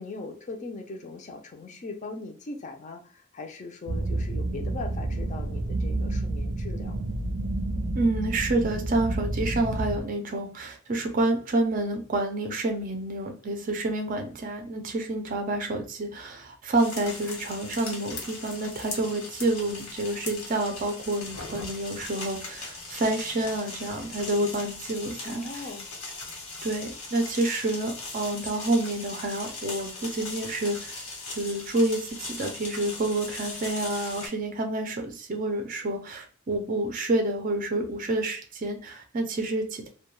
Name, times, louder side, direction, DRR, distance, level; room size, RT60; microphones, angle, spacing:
voice 1, 0.0-7.0 25.2-25.9, left 3 dB, 35° left, 3 dB, 0.4 m, -40 dB
sound 1, 3.9-10.0, right 2 dB, 90° right, 0.5 m, -30 dB
voice 2, 7.9-25.6 26.6-31.0 31.3-39.9, right 2 dB, 40° right, 4 dB, 0.5 m, -28 dB
sound 2, 16.8-34.3, left 3 dB, 90° left, 1.1 m, -39 dB
2.2 x 2.2 x 3.0 m, 0.40 s
head